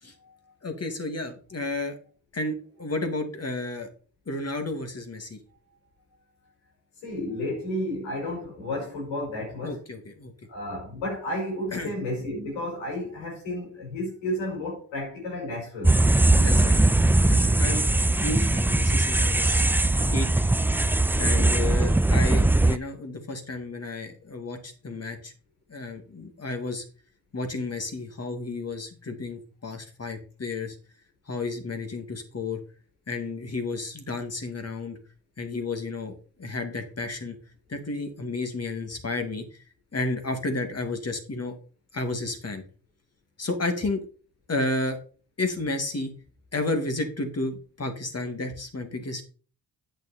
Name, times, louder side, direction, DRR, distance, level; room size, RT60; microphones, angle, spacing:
voice 1, 0.6-2.0 2.3-3.9 4.3-5.4 9.6-10.3 11.7-11.9 16.4-16.8 17.3-19.6 20.1-20.3 21.2-25.3 25.7-26.8 27.3-30.8 31.3-32.6 33.1-35.0 35.4-37.4 37.7-39.4 39.9-41.6 41.9-42.6 43.4-44.1 44.5-45.0 45.4-46.1 46.5-49.2, left 2 dB, 30° left, 2.5 m, -32 dB
voice 2, 7.0-9.8 10.5-16.0 21.2-21.6, left 1 dB, 85° left, 5.4 m, -32 dB
sound 1, 15.8-22.8, right 2 dB, 5° right, 0.3 m, -20 dB
9.1 x 6.1 x 4.3 m
supercardioid pair, 55°, 46 cm